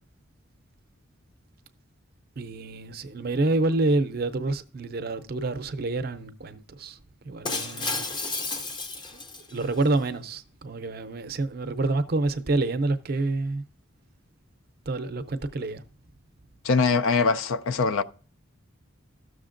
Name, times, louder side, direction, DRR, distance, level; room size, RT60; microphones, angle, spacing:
voice 1, 2.4-7.0 7.2-8.1 9.1-9.2 9.5-13.6 14.9-15.8, right 2 dB, 50° right, 0.5 m, -28 dB
Shatter, 7.4-9.8, left 3 dB, 20° left, 0.5 m, -32 dB
voice 2, 16.6-18.0, left 4 dB, 80° left, 0.5 m, -22 dB
13.5 x 6.4 x 2.5 m
head